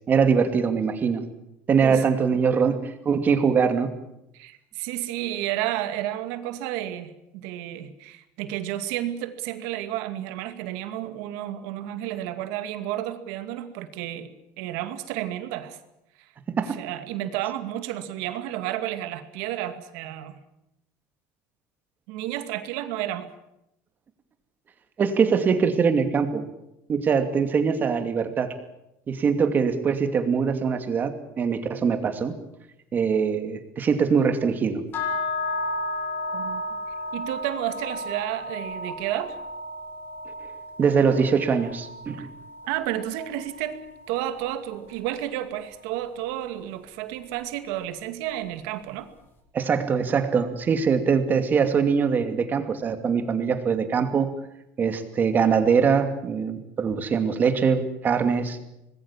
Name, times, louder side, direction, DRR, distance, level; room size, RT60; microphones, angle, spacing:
voice 1, 0.1-1.3 1.7-3.9 16.5-16.8 25.0-26.5 26.9-28.6 29.1-32.3 32.9-34.8 40.8-42.3 49.5-54.3 54.8-58.6, right 6 dB, 30° right, 8 dB, 2.6 m, -22 dB
voice 2, 4.3-15.8 16.2-16.3 16.7-20.4 22.1-23.3 36.3-36.6 37.1-39.4 42.2-42.3 42.7-49.1, right 13 dB, 80° right, 9 dB, 2.4 m, -31 dB
sound 1, 34.9-45.0, left 2 dB, 35° left, 7.2 m, -34 dB
25.0 x 20.5 x 7.4 m, 0.86 s
cardioid pair, 140°, 6 cm